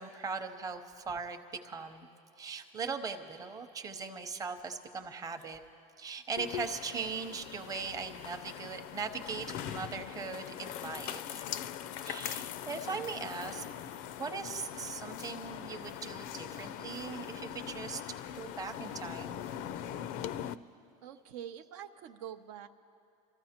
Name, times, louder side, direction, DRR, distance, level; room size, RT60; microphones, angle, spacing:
voice 1, 0.0-2.1 2.4-5.6 6.0-11.5 12.0-13.6 14.2-18.0 18.3-19.4, right 5 dB, 20° right, 6 dB, 0.7 m, -39 dB
sound 1, 6.4-20.5, left 10 dB, 50° left, 0.4 m, -41 dB
voice 2, 21.0-22.7, right 10 dB, 70° right, 7 dB, 0.6 m, -45 dB
28.5 x 14.0 x 2.9 m, 2.5 s
supercardioid pair, 135°, 18 cm